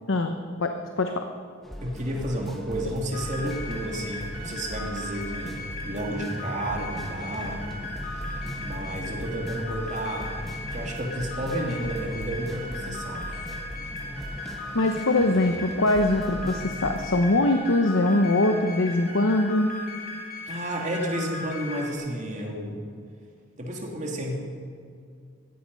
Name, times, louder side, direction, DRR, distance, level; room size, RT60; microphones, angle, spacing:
voice 1, 0.1-1.3 14.7-19.7, left 2 dB, 75° left, 5 dB, 0.9 m, -23 dB
sound 1, 1.6-17.1, equal, ahead, 1.2 m, -38 dB
voice 2, 1.8-7.6 8.0-8.2 8.5-10.3 10.7-13.5 20.5-22.8 23.6-24.3, right 1 dB, 35° right, 0 dB, 2.5 m, -31 dB
sound 2, 3.1-21.9, left 2 dB, 45° left, 3.0 m, -38 dB
16.0 x 14.5 x 5.4 m, 2.3 s
head